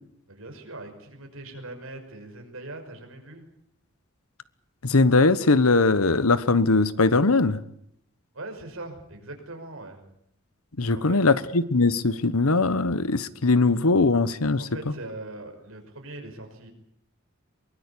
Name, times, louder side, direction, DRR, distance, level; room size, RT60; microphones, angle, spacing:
voice 1, 0.3-3.5 8.3-10.0 10.9-11.2 14.6-16.7, right 2 dB, 75° right, 5.8 m, -41 dB
voice 2, 4.8-7.6 10.8-14.6, left 3 dB, 90° left, 1.2 m, -20 dB
23.5 x 21.5 x 8.6 m
head